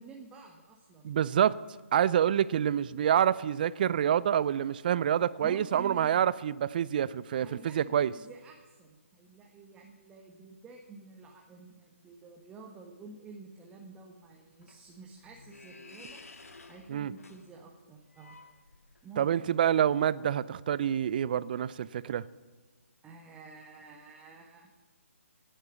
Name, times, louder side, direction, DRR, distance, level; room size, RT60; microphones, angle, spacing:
voice 1, 0.0-1.3 5.4-6.2 7.4-16.2 16.7-18.4 19.0-19.5 23.0-24.7, right 3 dB, 10° right, 1.2 m, -50 dB
voice 2, 1.0-1.6 1.9-8.1 16.9-17.1 19.2-22.2, right 9 dB, 40° right, 0.5 m, -27 dB
sound 1, 14.2-19.2, left 3 dB, 80° left, 1.8 m, -53 dB
17.5 x 9.1 x 7.0 m
figure-of-eight pair, 150°, 8 cm